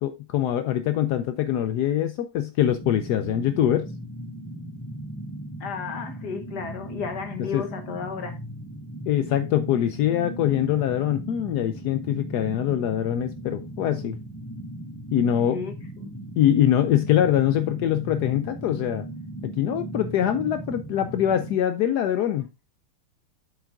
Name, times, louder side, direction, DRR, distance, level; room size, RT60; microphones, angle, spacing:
voice 1, 0.0-3.9 7.5-7.6 9.1-14.2 15.1-15.6 16.4-19.1 19.4-22.5, left 11 dB, 85° left, 0.8 m, -23 dB
sound 1, 2.8-21.6, right 1 dB, 10° left, 2.3 m, -37 dB
voice 2, 5.6-8.4 15.5-16.1, left 6 dB, 60° left, 1.3 m, -33 dB
8.1 x 7.2 x 2.3 m
omnidirectional pair, 2.3 m